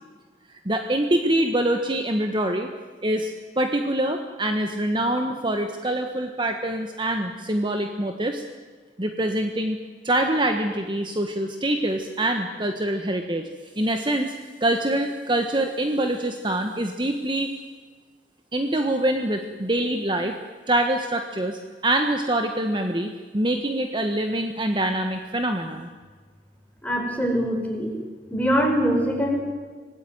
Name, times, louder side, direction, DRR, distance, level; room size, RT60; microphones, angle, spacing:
voice 1, 0.6-2.7 3.0-3.3 3.6-8.4 9.0-9.8 10.0-13.4 13.8-14.3 14.6-17.5 18.5-20.4 20.7-25.9, right 1 dB, 25° right, 5 dB, 1.5 m, -25 dB
voice 2, 26.8-27.9 28.3-29.4, equal, 10° left, 1 dB, 5.3 m, -23 dB
26.0 x 19.0 x 9.5 m, 1.5 s
head